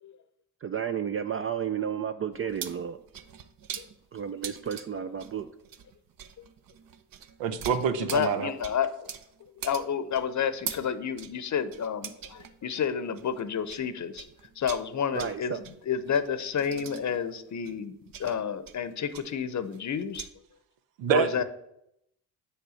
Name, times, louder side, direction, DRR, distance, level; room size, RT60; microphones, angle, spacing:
voice 1, 0.6-3.0 4.1-5.5 15.1-15.6, right 8 dB, 30° right, 10 dB, 0.4 m, -32 dB
sound 1, 2.3-13.9 14.1-20.3, right 8 dB, 50° right, 0.7 m, -43 dB
voice 2, 7.4-8.5 21.0-21.4, right 7 dB, 80° right, 10 dB, 0.8 m, -26 dB
voice 3, 8.0-8.9 9.6-14.3 14.6-17.9 18.2-20.3 21.1-21.4, left 7 dB, 40° left, 13 dB, 0.7 m, -30 dB
7.2 x 3.4 x 6.3 m, 0.79 s
supercardioid pair, 55°, 44 cm